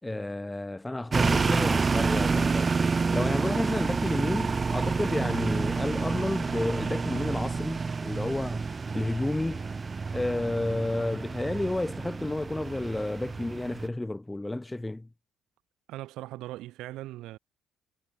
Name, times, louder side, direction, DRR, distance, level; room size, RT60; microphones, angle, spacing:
voice 1, 0.0-9.7 10.1-15.1, left 2 dB, 15° left, 5.3 m, -31 dB
sound 1, 1.1-13.9, right 4 dB, 35° right, 2.6 m, -29 dB
voice 2, 15.9-17.4, right 16 dB, 75° right, 5.1 m, -39 dB
supercardioid pair, 65°, 0 cm